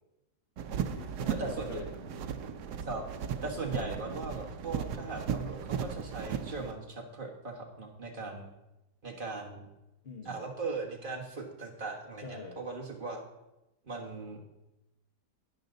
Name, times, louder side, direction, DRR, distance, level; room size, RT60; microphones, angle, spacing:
sound 1, 0.6-6.7, right 7 dB, 75° right, 1.2 m, -36 dB
voice 1, 0.7-2.4 3.5-4.2 10.0-10.4 12.2-12.6, left 4 dB, 40° left, 1 dB, 1.2 m, -46 dB
voice 2, 1.3-1.8 2.8-3.0 3.4-8.5 9.0-9.7 10.2-13.2 13.9-14.4, right 3 dB, 30° right, 0 dB, 1.7 m, -39 dB
12.5 x 9.3 x 3.9 m, 0.97 s
omnidirectional pair, 1.8 m